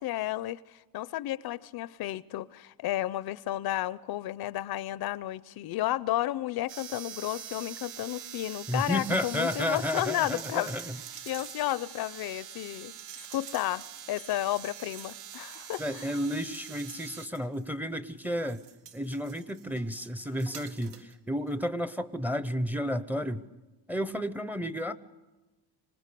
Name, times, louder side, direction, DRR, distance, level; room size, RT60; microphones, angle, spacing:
voice 1, 0.0-10.7 11.3-13.0 13.3-16.1, left 14 dB, 60° left, 0.7 m, -32 dB
sound 1, 6.7-17.3, right 10 dB, 50° right, 0.8 m, -44 dB
sound 2, 7.3-7.7 8.0-17.8 18.2-21.1 21.5-21.6, right 8 dB, 80° right, 2.1 m, -51 dB
voice 2, 8.7-11.0 15.8-18.6 18.9-23.5 23.9-24.9, equal, 5° right, 0.7 m, -32 dB
26.0 x 19.5 x 6.8 m
cardioid pair, 135°, 41 cm